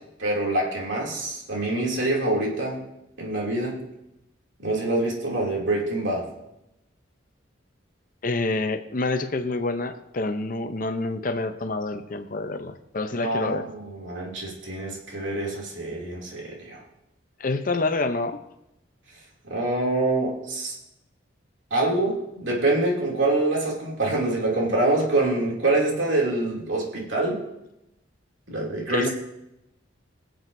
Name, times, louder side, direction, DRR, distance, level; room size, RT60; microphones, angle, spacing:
voice 1, 0.2-2.8 3.2-3.8 4.6-6.3 13.2-16.8 19.5-20.8 21.7-27.4 28.5-29.1, right 2 dB, 70° right, -2 dB, 2.8 m, -25 dB
voice 2, 8.2-13.7 17.4-18.4 28.7-29.1, left 3 dB, 45° left, 8 dB, 0.7 m, -27 dB
23.0 x 7.8 x 2.7 m, 0.88 s
head